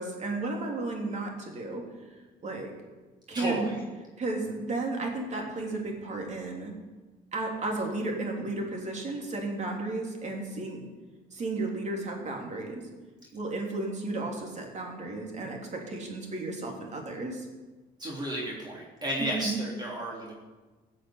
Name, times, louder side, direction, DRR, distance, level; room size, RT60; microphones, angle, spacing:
voice 1, 0.0-1.8 2.4-2.7 3.3-3.7 4.2-6.7 7.3-10.9 11.3-12.8 13.3-17.5 19.2-19.6, right 2 dB, 45° right, 1 dB, 3.4 m, -33 dB
voice 2, 3.3-3.8 18.0-20.3, right 1 dB, 25° right, -4 dB, 3.4 m, -33 dB
16.0 x 6.6 x 8.8 m, 1.3 s
cardioid pair, 110°, 17 cm